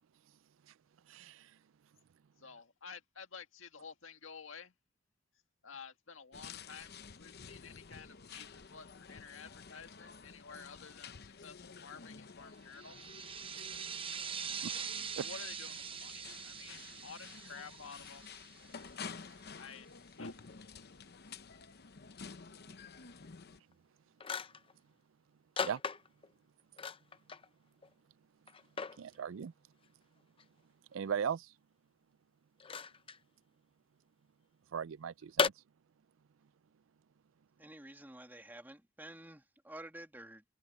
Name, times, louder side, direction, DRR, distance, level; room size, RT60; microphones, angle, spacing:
voice 1, 1.1-1.5 14.6-14.7 15.2-15.3 25.6-25.8 29.0-29.5 30.9-31.5 34.7-35.5, right 7 dB, 85° right, 0.4 m, -38 dB
voice 2, 2.4-4.7 5.6-13.0 15.2-18.3 19.6-19.9 20.2-21.7, left 5 dB, 80° left, 1.9 m, -52 dB
sound 1, 6.3-23.6, left 5 dB, 55° left, 0.9 m, -51 dB
sound 2, 12.7-19.0, right 7 dB, 30° right, 0.9 m, -43 dB
sound 3, 23.7-23.8 24.2-24.7 25.6-26.3 26.8-27.5 27.8-27.9 28.5-29.0 30.4-30.5 32.6-33.2 35.4-35.5, left 5 dB, 25° left, 0.6 m, -35 dB
voice 3, 37.6-40.4, right 1 dB, 10° right, 2.0 m, -50 dB
head